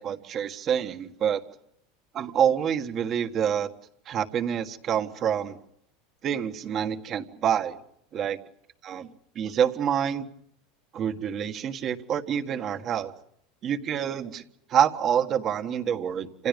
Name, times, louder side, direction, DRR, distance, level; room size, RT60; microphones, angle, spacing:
voice 1, 0.0-1.4 2.1-3.7 4.1-5.6 6.2-7.8 8.1-8.4 8.8-9.1 9.3-10.3 10.9-13.1 13.6-14.4 14.7-16.5, right 8 dB, 30° right, 10 dB, 1.6 m, -27 dB
28.5 x 27.5 x 5.3 m, 0.74 s
supercardioid pair, 165°, 0 cm